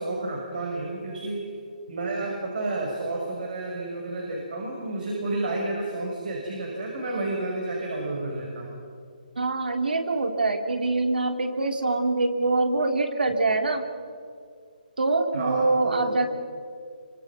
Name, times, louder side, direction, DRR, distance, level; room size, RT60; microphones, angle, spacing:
voice 1, 0.0-1.5 1.9-8.7 15.3-16.3, right 2 dB, 65° right, -1 dB, 6.5 m, -31 dB
voice 2, 9.4-13.8 15.0-16.3, right 3 dB, 85° right, 6 dB, 3.1 m, -24 dB
26.0 x 25.5 x 6.2 m, 2.2 s
hypercardioid pair, 160°, 5 cm